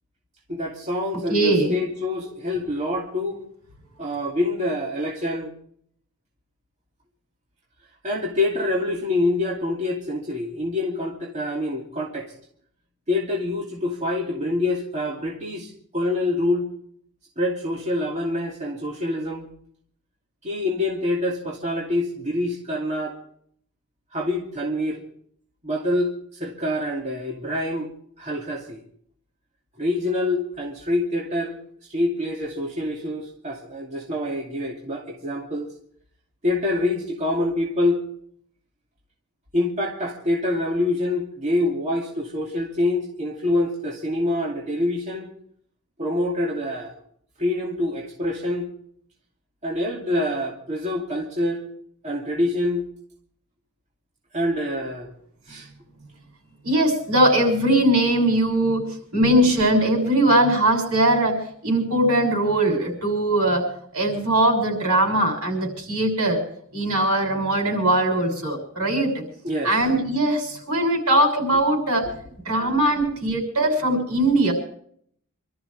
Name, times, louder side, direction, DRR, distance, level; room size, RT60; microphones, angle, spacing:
voice 1, 0.5-3.4 4.0-5.5 8.0-12.3 13.1-16.7 17.4-19.5 20.4-23.2 24.1-25.0 25.6-27.9 28.2-28.8 29.8-31.5 31.9-35.7 36.4-38.0 39.5-45.3 46.0-47.0 47.4-48.7 49.6-51.6 52.0-52.9 54.3-55.1 55.5-55.7 69.4-69.7 72.6-72.7, left 1 dB, 30° right, -2 dB, 2.5 m, -26 dB
voice 2, 1.3-1.8 56.6-58.8 59.1-66.4 66.7-69.2 69.6-72.1 72.4-74.5, right 1 dB, 85° right, 2 dB, 6.7 m, -20 dB
27.0 x 13.5 x 3.4 m, 0.64 s
head